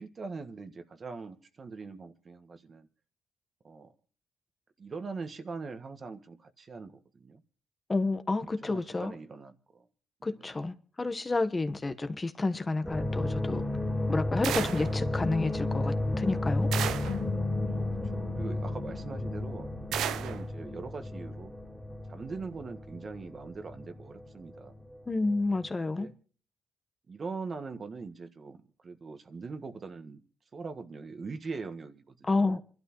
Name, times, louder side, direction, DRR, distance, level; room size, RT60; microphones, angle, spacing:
voice 1, 0.0-2.9 3.6-3.9 4.8-7.4 8.6-9.9 10.2-10.5 17.7-21.5 22.1-24.9 25.9-26.1 27.1-30.2 30.5-32.6, right 4 dB, 45° right, 1.5 m, -42 dB
voice 2, 7.9-9.1 10.2-13.6 14.1-16.7 25.1-26.1 32.3-32.6, left 3 dB, 30° left, 1.2 m, -30 dB
sound 1, 12.8-25.0 25.2-25.7, left 2 dB, ahead, 2.5 m, -33 dB
sound 2, 14.4-15.0 16.7-17.2 19.9-20.4, right 10 dB, 85° right, 0.6 m, -32 dB
sound 3, 17.1-20.2, left 8 dB, 80° left, 0.8 m, -42 dB
26.5 x 12.0 x 3.1 m
supercardioid pair, 65°, 0 cm